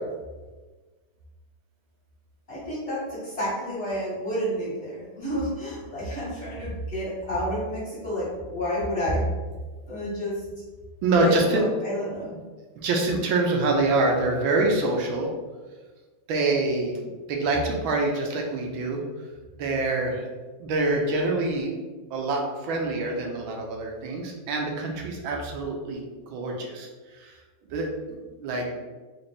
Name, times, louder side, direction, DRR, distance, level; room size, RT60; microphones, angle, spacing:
voice 1, 2.5-9.2 9.9-10.4 11.2-12.4, equal, 35° left, -9 dB, 1.2 m, -30 dB
voice 2, 11.0-11.6 12.8-15.3 16.3-19.0 19.6-20.3 20.6-21.7 22.1-26.9 27.1-27.4 27.7-28.7, right 2 dB, 80° right, 1 dB, 1.4 m, -25 dB
3.9 x 2.5 x 3.4 m, 1.3 s
omnidirectional pair, 2.2 m